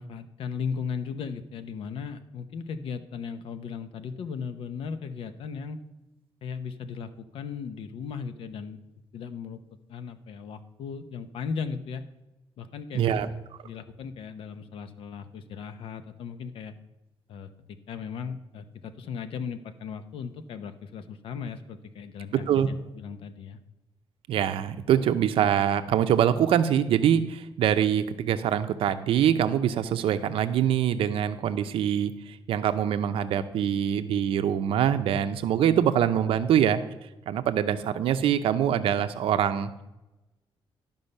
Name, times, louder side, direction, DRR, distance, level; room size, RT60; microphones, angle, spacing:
voice 1, 0.0-5.8 6.4-8.8 9.1-9.6 9.9-12.0 12.6-13.2 13.6-16.8 17.3-17.5 17.9-23.6, left 6 dB, 75° left, 10 dB, 0.8 m, -37 dB
voice 2, 12.9-13.3 22.5-22.7 24.3-36.8 37.3-39.7, right 9 dB, 80° right, 10 dB, 0.6 m, -24 dB
12.0 x 5.4 x 5.4 m, 0.98 s
wide cardioid pair, 170°, 9 cm